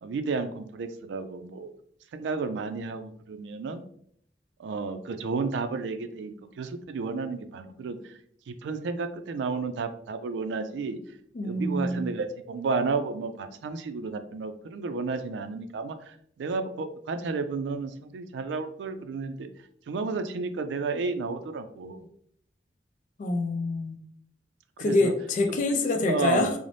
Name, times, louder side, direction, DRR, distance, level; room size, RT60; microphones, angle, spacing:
voice 1, 0.0-1.7 2.1-3.8 4.6-8.1 8.5-11.0 11.4-19.5 19.9-22.0 24.8-25.1 25.7-26.5, right 4 dB, 90° right, 9 dB, 0.3 m, -32 dB
voice 2, 11.3-12.1 23.2-24.0 24.8-26.5, left 2 dB, 45° left, 5 dB, 0.3 m, -26 dB
2.6 x 2.0 x 3.1 m, 0.65 s
head